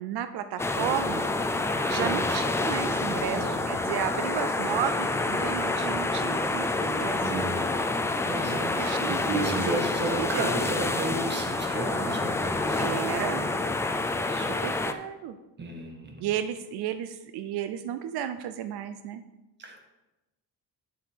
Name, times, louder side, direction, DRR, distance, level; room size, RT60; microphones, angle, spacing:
voice 1, 0.0-1.3 1.9-7.2 8.5-9.8 10.2-10.5 12.8-13.5 14.3-15.4 16.2-19.2, right 10 dB, 85° right, 10 dB, 0.7 m, -33 dB
sound 1, 0.6-14.9, left 2 dB, 10° left, 0.3 m, -28 dB
voice 2, 1.9-2.4 3.3-3.6 7.2-12.9 15.6-16.3 19.6-19.9, right 2 dB, 30° right, 3 dB, 1.5 m, -33 dB
9.7 x 6.8 x 4.6 m, 1.0 s
cardioid pair, 165°, 38 cm